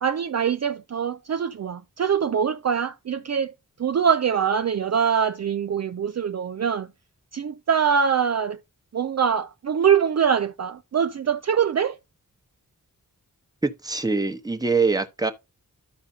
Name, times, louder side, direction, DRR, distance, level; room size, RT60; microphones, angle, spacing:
voice 1, 0.0-3.5 3.8-6.9 7.3-8.6 8.9-12.0, right 7 dB, 50° right, 0.4 m, -23 dB
voice 2, 13.6-15.3, right 4 dB, 10° right, 1.0 m, -24 dB
13.0 x 4.9 x 2.7 m
wide cardioid pair, 100°, 34 cm